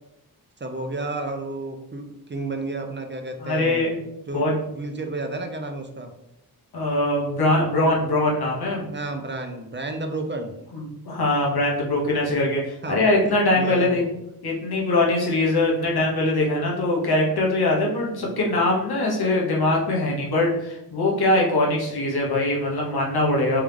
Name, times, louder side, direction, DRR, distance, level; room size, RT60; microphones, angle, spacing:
voice 1, 0.6-3.9 4.3-6.1 8.9-10.5 12.4-12.5 12.8-14.1 18.2-18.5 20.0-20.2, right 2 dB, 30° right, 5 dB, 0.5 m, -32 dB
voice 2, 3.4-4.0 4.3-4.5 6.7-8.9 10.7-14.0 14.4-23.6, left 2 dB, 80° left, -3 dB, 1.2 m, -22 dB
3.5 x 3.1 x 3.4 m, 0.84 s
wide cardioid pair, 90°, 38 cm